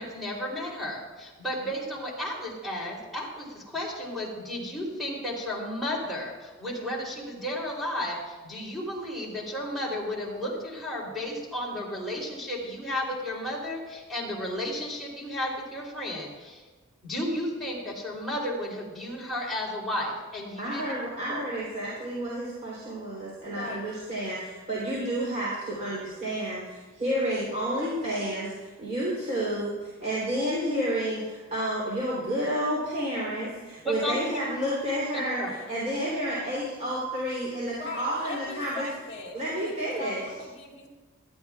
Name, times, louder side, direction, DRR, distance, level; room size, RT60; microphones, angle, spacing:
voice 1, 0.0-16.6 17.0-20.9 21.3-21.4 33.8-34.4 35.1-35.5, left 1 dB, ahead, -6 dB, 3.3 m, -33 dB
voice 2, 20.6-38.9 39.3-40.2, equal, 35° right, -7 dB, 3.3 m, -30 dB
voice 3, 23.4-23.8 37.7-40.9, left 2 dB, 35° left, 0 dB, 2.5 m, -40 dB
18.0 x 13.0 x 2.4 m, 1.3 s
head